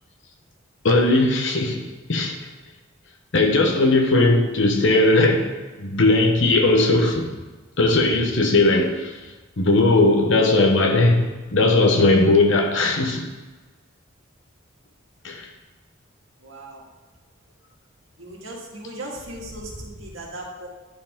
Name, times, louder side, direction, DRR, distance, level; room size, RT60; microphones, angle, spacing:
voice 1, 0.8-1.8 2.1-2.4 3.3-5.5 5.8-7.3 7.8-9.1 9.6-13.3 15.2-15.5, left 2 dB, 70° left, 4 dB, 1.0 m, -18 dB
voice 2, 16.4-16.8 18.2-20.7, right 1 dB, 80° right, -2 dB, 1.8 m, -37 dB
10.0 x 4.7 x 3.6 m, 1.2 s
head